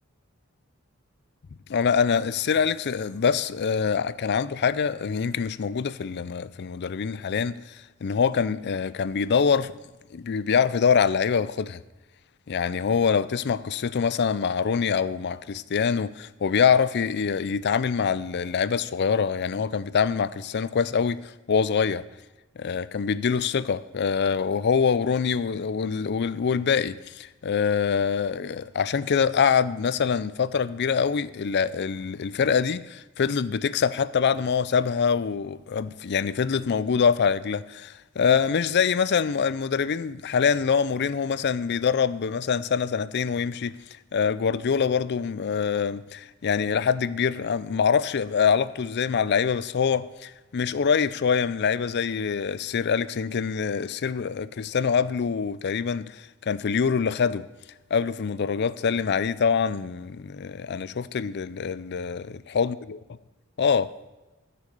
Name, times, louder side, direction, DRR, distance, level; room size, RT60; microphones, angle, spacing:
voice 1, 1.7-9.7 10.1-11.8 12.5-22.0 22.6-43.8 44.1-57.5 57.9-63.0 63.6-63.9, left 6 dB, 55° left, 0.4 m, -25 dB
13.0 x 6.8 x 6.9 m
head